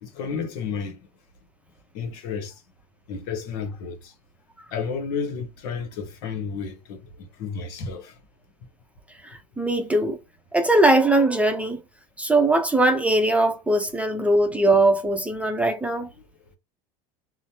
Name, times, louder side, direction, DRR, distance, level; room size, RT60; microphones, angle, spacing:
voice 1, 0.0-1.0 1.9-2.6 3.1-4.1 4.7-8.2, left 5 dB, 75° left, 1.0 m, -32 dB
voice 2, 9.2-10.2 10.5-11.8 12.2-16.1, right 2 dB, 5° right, 0.6 m, -20 dB
3.1 x 2.1 x 2.8 m
supercardioid pair, 100°, 20 cm